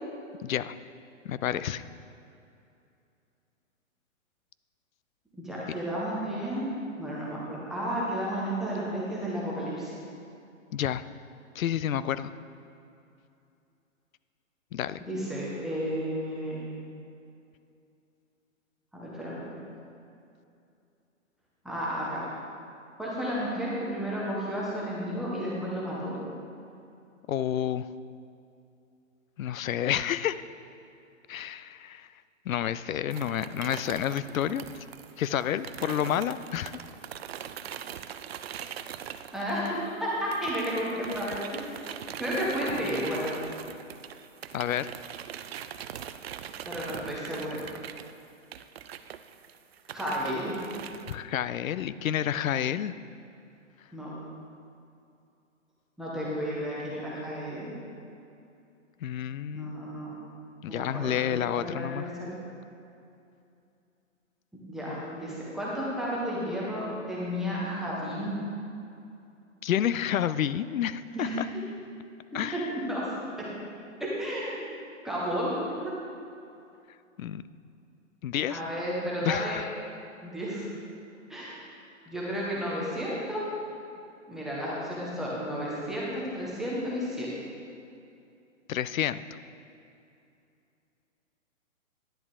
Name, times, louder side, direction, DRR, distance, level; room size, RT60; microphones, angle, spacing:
voice 1, 0.4-0.8 1.2-1.8 10.7-11.0 11.6-12.3 14.7-15.0 27.3-27.9 29.4-30.4 31.3-32.1 32.5-34.7 35.2-36.7 44.5-44.9 51.1-52.9 59.0-59.8 60.6-62.1 69.6-71.5 72.3-72.7 77.2-77.4 78.2-78.6 79.2-79.7 88.7-89.2, left 10 dB, 85° left, 14 dB, 0.5 m, -29 dB
voice 2, 5.4-6.7 7.0-9.9 15.0-16.7 18.9-19.4 21.6-22.3 23.0-26.1 39.3-41.7 42.2-43.3 46.7-47.6 49.9-50.6 53.9-54.1 56.0-57.7 59.5-60.2 60.7-62.4 64.7-68.4 71.1-71.4 72.5-73.5 74.2-74.7 75.0-75.5 75.8-75.9 78.5-79.6 80.2-80.7 81.3-81.7 82.1-83.5 84.3-87.3, equal, ahead, -7 dB, 0.5 m, -32 dB
sound 1, 33.1-40.0 40.3-51.2, right 9 dB, 50° right, 0.4 m, -41 dB
10.5 x 8.6 x 3.6 m, 2.6 s
hypercardioid pair, 150°, 40 cm